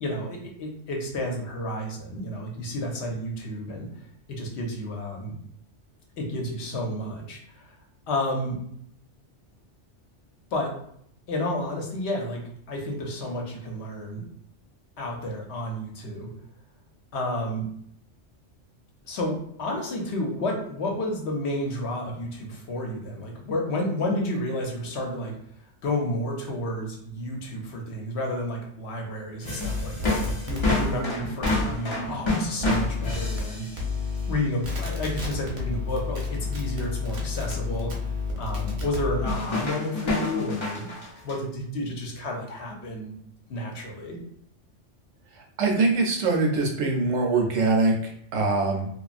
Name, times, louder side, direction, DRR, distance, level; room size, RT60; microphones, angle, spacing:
voice 1, 0.0-3.9 4.3-5.3 6.2-7.8 8.1-8.6 10.5-10.7 11.3-12.4 12.7-14.2 15.0-16.3 17.1-17.7 19.0-25.4 25.8-33.7 34.3-37.9 38.4-40.9 41.2-43.1 43.5-44.2, left 1 dB, 65° left, 0 dB, 0.9 m, -31 dB
sound 1, 29.4-33.9 34.2-34.3 34.7-34.8 36.1-36.5 36.8-36.9 37.2-37.3 39.3-41.4, left 2 dB, 35° left, 0.5 m, -29 dB
sound 2, 29.6-30.9 31.5-31.6 32.6-33.4 33.8-34.3 34.6-39.3, left 4 dB, 40° right, 0.5 m, -30 dB
voice 2, 45.6-48.9, right 3 dB, 75° right, 2 dB, 0.9 m, -23 dB
2.9 x 2.3 x 2.4 m, 0.69 s
omnidirectional pair, 1.2 m